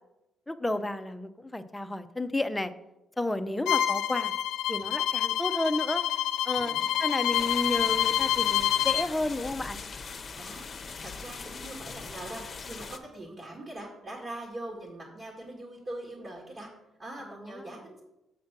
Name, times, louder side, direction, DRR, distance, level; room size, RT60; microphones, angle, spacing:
voice 1, 0.5-2.7 3.2-4.3 4.7-6.0 6.4-9.8 17.7-17.8, left 2 dB, 10° left, 9 dB, 0.6 m, -31 dB
voice 2, 3.3-3.7 6.6-6.9 10.4-16.7 17.0-18.0, right 1 dB, 40° right, -2 dB, 1.8 m, -42 dB
Bowed string instrument, 3.7-9.1, left 11 dB, 85° left, 0.3 m, -27 dB
sound 1, 7.3-13.0, left 5 dB, 40° left, 0.9 m, -41 dB
7.4 x 6.1 x 6.0 m, 0.95 s
cardioid pair, 90°, 0 cm